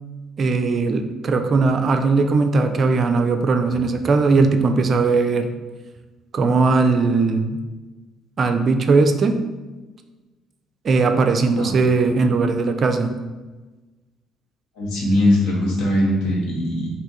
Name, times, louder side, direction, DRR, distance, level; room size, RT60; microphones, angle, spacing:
voice 1, 0.4-5.5 6.3-7.6 8.4-9.4 10.8-13.2, right 4 dB, 45° right, 6 dB, 0.4 m, -19 dB
voice 2, 14.7-16.9, left 1 dB, 60° left, -3 dB, 1.1 m, -20 dB
3.4 x 2.7 x 4.0 m, 1.2 s
figure-of-eight pair, 45°, 0 cm